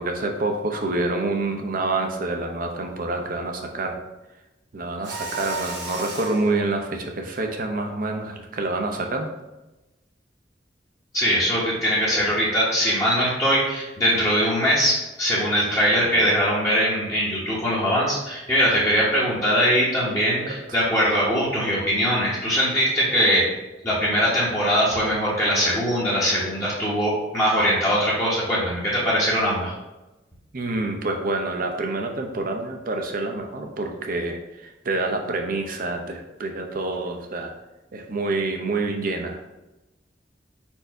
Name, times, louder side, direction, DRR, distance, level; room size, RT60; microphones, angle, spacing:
voice 1, 0.0-4.0 4.7-9.3 16.0-16.3 20.5-20.8 30.5-37.5 37.9-39.5, right 2 dB, 50° right, 3 dB, 0.6 m, -27 dB
Mechanisms, 5.0-6.5, right 2 dB, 85° right, 1.4 m, -33 dB
voice 2, 11.1-23.4 23.8-29.7, equal, 15° left, -8 dB, 0.9 m, -21 dB
4.4 x 2.6 x 4.5 m, 1.0 s
head